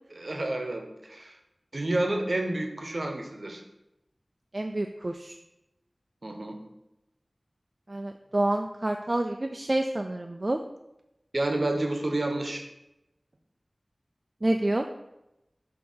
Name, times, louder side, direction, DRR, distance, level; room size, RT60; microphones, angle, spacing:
voice 1, 0.1-1.4 1.7-3.6 6.2-6.6 11.3-12.6, right 1 dB, 60° right, 3 dB, 0.9 m, -29 dB
voice 2, 4.5-5.4 7.9-10.6 14.4-14.8, right 1 dB, 45° right, 4 dB, 0.4 m, -28 dB
6.4 x 2.8 x 5.5 m, 0.91 s
wide cardioid pair, 45°, 0 cm